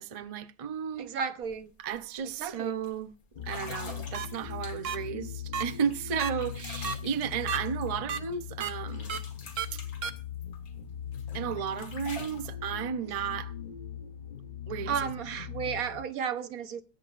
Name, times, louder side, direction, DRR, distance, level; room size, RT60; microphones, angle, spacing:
voice 1, 0.0-1.1 1.8-3.1 3.4-9.2 9.7-9.8 11.3-13.5 14.7-15.1, right 7 dB, 40° right, 0.5 m, -34 dB
voice 2, 1.0-1.7 2.4-2.7 13.1-13.2 14.9-16.8, right 7 dB, 80° right, 1.4 m, -33 dB
sound 1, 1.4-1.6 1.9-2.2 2.8-2.9 3.4-5.1 5.7-8.4 8.6-10.7 11.1-12.5, left 4 dB, 85° left, 2.2 m, -46 dB
sound 2, 3.3-16.1, left 9 dB, 45° left, 0.8 m, -40 dB
sound 3, 4.1-4.3 4.8-5.0 5.5-5.6 6.2-6.3 6.8-6.9 7.5-7.6 8.1-8.2 8.6-8.7 9.1-9.2 9.6-9.7 10.0-10.1, right 7 dB, 65° right, 1.2 m, -31 dB
22.0 x 8.8 x 2.5 m
omnidirectional pair, 1.5 m